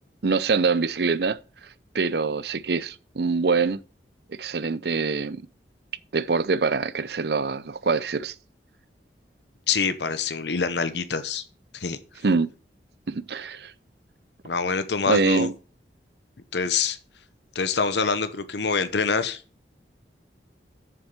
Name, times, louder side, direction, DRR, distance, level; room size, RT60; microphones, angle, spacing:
voice 1, 0.2-1.4 1.9-3.8 4.4-5.4 6.1-8.3 12.2-12.5 13.1-13.7 15.1-15.5, right 4 dB, 70° right, 0.6 m, -24 dB
voice 2, 9.7-11.4 11.7-12.0 14.4-15.5 16.5-17.0 17.5-19.4, left 5 dB, 80° left, 0.9 m, -25 dB
7.3 x 6.9 x 6.7 m
head